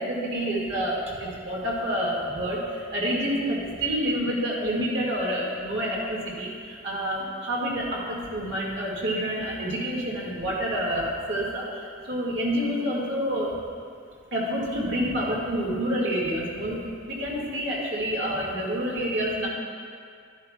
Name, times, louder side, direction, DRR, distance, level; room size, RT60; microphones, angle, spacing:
voice 1, 0.0-13.5 14.3-19.5, equal, 60° right, -5 dB, 2.0 m, -28 dB
12.0 x 10.5 x 2.4 m, 2.2 s
head